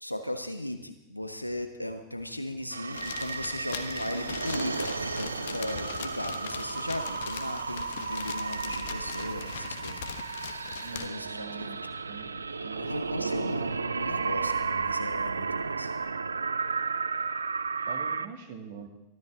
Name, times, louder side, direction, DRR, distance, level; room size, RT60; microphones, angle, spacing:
voice 1, 0.0-10.0 10.9-11.7 12.8-15.9, left 1 dB, 90° left, 7 dB, 1.3 m, -37 dB
sound 1, 2.7-18.3, right 4 dB, 75° right, 0.5 m, -33 dB
sound 2, 2.9-11.1, left 9 dB, 60° left, 1.1 m, -41 dB
voice 2, 10.8-12.3 12.6-13.5 17.9-18.9, right 6 dB, 50° right, 4 dB, 2.6 m, -44 dB
23.0 x 13.5 x 3.8 m, 0.90 s
figure-of-eight pair, 90°, 0 cm